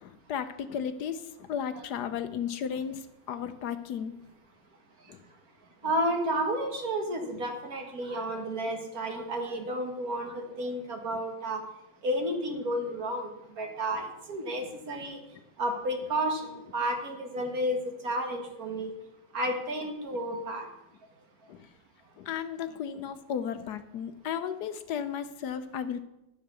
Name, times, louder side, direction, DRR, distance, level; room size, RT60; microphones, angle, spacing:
voice 1, 0.0-4.2 5.1-5.2 14.6-14.7 21.5-21.7 22.2-26.0, left 8 dB, 70° left, 11 dB, 1.2 m, -34 dB
voice 2, 5.8-11.6 12.0-13.3 13.6-15.2 15.6-18.9 19.3-20.7, right 1 dB, 55° right, 3 dB, 2.1 m, -31 dB
10.5 x 7.7 x 6.8 m, 0.89 s
omnidirectional pair, 1.9 m